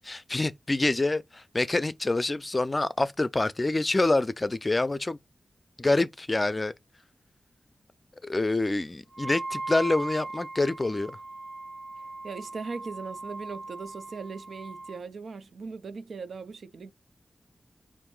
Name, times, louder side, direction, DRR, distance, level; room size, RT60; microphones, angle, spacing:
voice 1, 0.0-5.2 5.8-6.7 8.2-11.2, left 2 dB, 30° left, 0.4 m, -26 dB
Wind instrument woodwind instrument, 9.1-15.0, right 2 dB, 50° right, 0.7 m, -39 dB
voice 2, 12.2-16.9, right 4 dB, 85° right, 0.5 m, -39 dB
4.7 x 2.5 x 3.8 m
wide cardioid pair, 75°, 0 cm